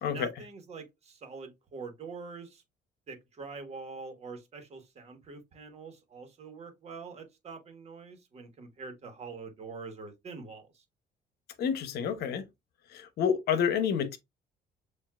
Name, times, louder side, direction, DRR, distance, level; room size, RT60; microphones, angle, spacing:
voice 1, 0.1-2.6 3.1-10.8, right 4 dB, 40° right, 1.4 m, -44 dB
voice 2, 11.6-12.4 12.9-14.2, left 7 dB, 70° left, 0.9 m, -29 dB
7.1 x 2.6 x 2.4 m
cardioid pair, 110°, 17 cm